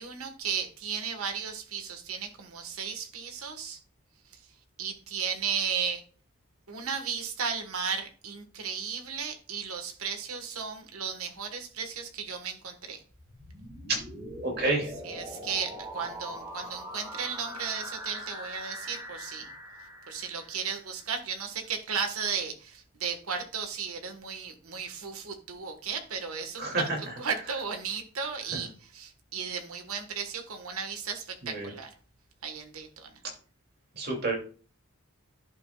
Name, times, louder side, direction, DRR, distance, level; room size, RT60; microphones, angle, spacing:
voice 1, 0.0-3.8 4.3-4.5 4.8-6.0 6.7-13.0 14.6-14.7 15.0-19.5 20.1-31.9 32.4-33.2, right 6 dB, 85° right, 6 dB, 1.3 m, -35 dB
sound 1, 13.1-21.1, equal, 15° right, 1.9 m, -42 dB
voice 2, 14.4-14.9 26.6-27.0 28.5-28.6 31.4-31.7 33.9-34.4, right 2 dB, 45° right, 1 dB, 2.5 m, -29 dB
10.5 x 6.9 x 2.3 m, 0.39 s
head